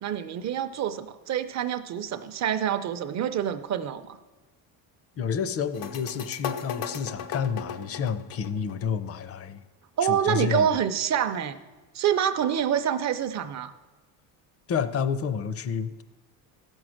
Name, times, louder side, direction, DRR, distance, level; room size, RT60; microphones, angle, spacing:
voice 1, 0.0-4.0 10.0-11.6 11.9-13.7, right 9 dB, 40° right, 11 dB, 0.6 m, -26 dB
voice 2, 5.2-9.6 10.0-10.7 14.7-16.0, left 7 dB, 35° left, 14 dB, 0.5 m, -29 dB
sound 1, 5.7-9.2, left 8 dB, 90° left, 0.9 m, -36 dB
14.5 x 6.2 x 6.3 m, 1.2 s
cardioid pair, 145°, 41 cm